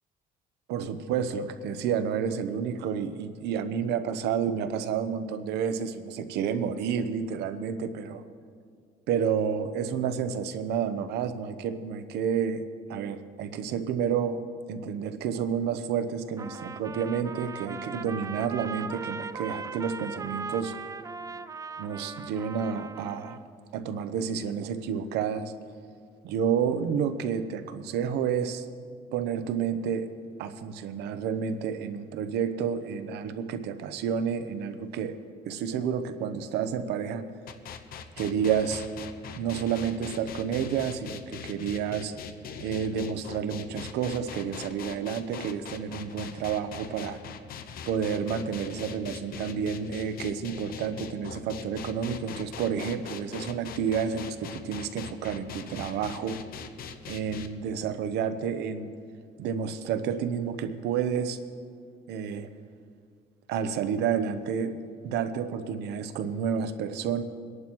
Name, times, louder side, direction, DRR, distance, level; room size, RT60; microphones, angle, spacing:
voice 1, 0.7-8.2 9.1-12.6 12.9-14.4 14.7-20.7 21.8-23.4 23.7-25.5 26.2-28.7 29.1-30.1 30.4-35.2 35.4-37.3 38.2-38.8 39.3-42.1 42.6-47.2 47.9-56.4 57.1-58.9 59.4-61.4 62.1-62.5 63.5-64.8 65.0-67.2, right 7 dB, 85° right, 10 dB, 0.8 m, -30 dB
Trumpet, 16.4-23.5, right 5 dB, 20° right, 0.4 m, -39 dB
sound 1, 37.5-57.5, left 7 dB, 60° left, 0.9 m, -41 dB
23.5 x 11.0 x 3.0 m, 2.2 s
cardioid pair, 110°, 17 cm